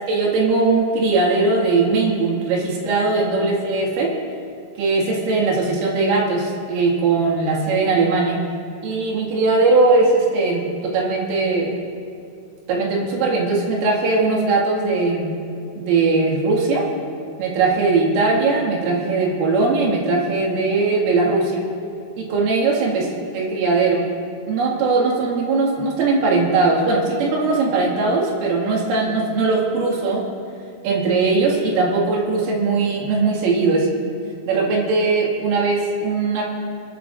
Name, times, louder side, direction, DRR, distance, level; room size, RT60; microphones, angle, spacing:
voice 1, 0.1-4.1 4.8-8.4 8.8-11.7 12.7-15.4 15.8-16.8 17.4-21.6 22.2-24.1 24.5-30.2 30.8-33.9 34.5-36.4, right 3 dB, 90° right, -2 dB, 4.7 m, -19 dB
25.5 x 13.0 x 2.6 m, 2.6 s
omnidirectional pair, 5.6 m